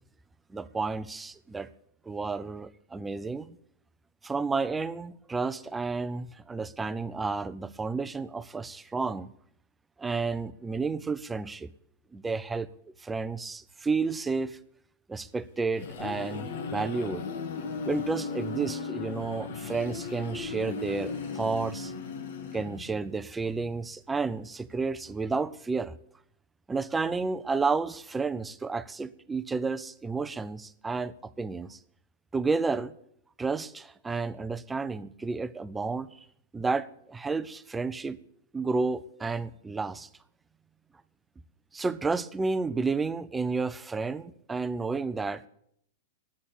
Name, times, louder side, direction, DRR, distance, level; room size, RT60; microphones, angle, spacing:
voice 1, 0.5-1.7 2.1-3.6 4.2-9.3 10.0-11.7 12.1-12.7 13.0-14.6 15.1-17.2 17.9-21.9 22.5-25.9 26.7-31.8 32.3-32.9 33.4-36.1 36.5-38.2 38.5-40.1 41.7-45.5, right 4 dB, 10° right, 14 dB, 0.5 m, -31 dB
sound 1, 15.4-23.1, left 5 dB, 70° left, 1.5 m, -36 dB
11.0 x 8.6 x 8.9 m, 0.71 s
hypercardioid pair, 135°, 0 cm